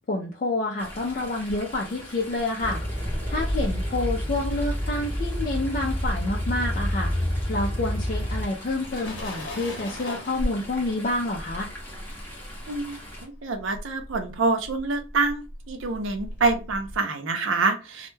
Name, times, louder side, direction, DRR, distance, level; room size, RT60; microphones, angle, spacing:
voice 1, 0.1-7.1 7.5-11.7, left 2 dB, 45° left, -2 dB, 0.4 m, -28 dB
Chatter / Stream, 0.8-13.2, equal, 10° left, 0.7 m, -39 dB
sound 1, 2.3-6.0 6.3-17.0, left 1 dB, 60° left, 0.8 m, -40 dB
sound 2, 2.6-8.5, equal, 35° right, 0.8 m, -28 dB
voice 2, 12.7-18.1, right 3 dB, 80° right, 5 dB, 0.5 m, -26 dB
2.1 x 2.1 x 3.1 m, 0.31 s
head